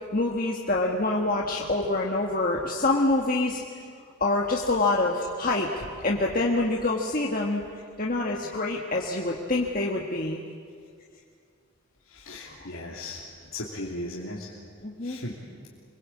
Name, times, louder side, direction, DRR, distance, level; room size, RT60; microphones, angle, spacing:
voice 1, 0.1-3.6 4.2-7.6 8.0-10.4 12.4-12.6 14.8-15.2, left 2 dB, 40° left, -1 dB, 1.7 m, -26 dB
voice 2, 12.1-13.2 13.5-14.5 15.0-15.4, left 1 dB, 80° left, -4 dB, 2.9 m, -37 dB
26.5 x 23.5 x 8.6 m, 2.2 s
head